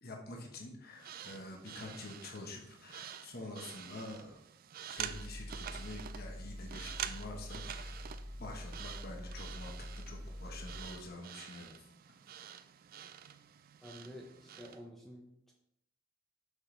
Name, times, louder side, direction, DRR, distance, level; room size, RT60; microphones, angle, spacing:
voice 1, 0.0-4.4 4.9-8.0 8.4-11.7, left 2 dB, 50° left, 1 dB, 1.1 m, -47 dB
sound 1, 0.9-14.8, right 9 dB, 45° right, 0.3 m, -47 dB
sound 2, 5.0-11.1, equal, 15° right, 2.2 m, -45 dB
voice 2, 13.8-15.5, equal, ahead, -1 dB, 0.6 m, -50 dB
6.5 x 5.7 x 3.3 m, 0.78 s
head